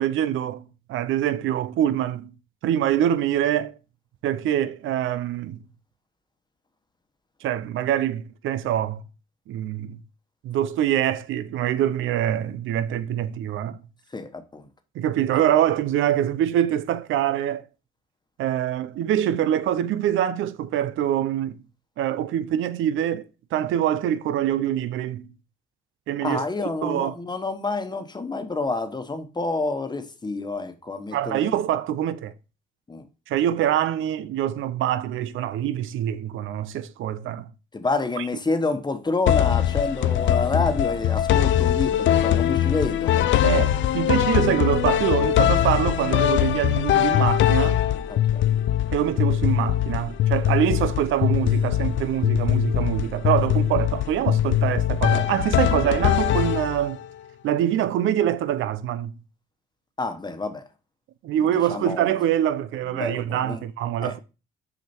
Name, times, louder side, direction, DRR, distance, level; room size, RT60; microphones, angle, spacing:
voice 1, 0.0-2.3 2.6-3.7 4.2-5.6 7.4-9.0 9.5-10.0 10.4-13.8 15.0-17.6 18.4-21.6 22.0-23.2 23.5-25.3 26.1-26.4 26.8-27.1 31.1-32.3 33.3-37.5 38.2-38.3 43.4-47.8 48.9-57.0 57.4-59.1 61.2-64.2, right 11 dB, 80° right, 0.6 m, -24 dB
voice 2, 14.1-14.7 26.2-31.5 32.9-33.0 37.7-43.5 48.1-48.4 60.0-60.6 61.4-62.1 62.9-63.6 64.0-64.2, left 3 dB, 20° left, 1.2 m, -28 dB
sound 1, 39.3-57.1, left 11 dB, 75° left, 0.5 m, -22 dB
6.4 x 4.9 x 4.4 m
cardioid pair, 90°, 20 cm